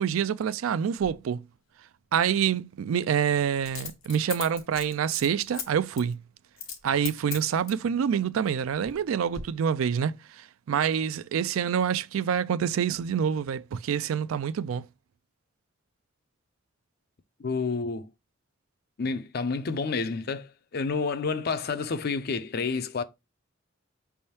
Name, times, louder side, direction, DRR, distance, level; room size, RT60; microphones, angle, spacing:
voice 1, 0.0-1.4 2.1-6.2 6.8-10.1 10.7-14.8, right 8 dB, 85° right, 0.3 m, -26 dB
Coin (dropping), 1.0-1.1 3.7-5.7 6.0-6.1 6.6-6.8 7.1-7.9 8.5-9.0 9.3-9.4, left 7 dB, 80° left, 1.1 m, -38 dB
voice 2, 17.4-18.1 19.0-23.0, left 4 dB, 50° left, 0.4 m, -29 dB
5.3 x 3.4 x 2.8 m
head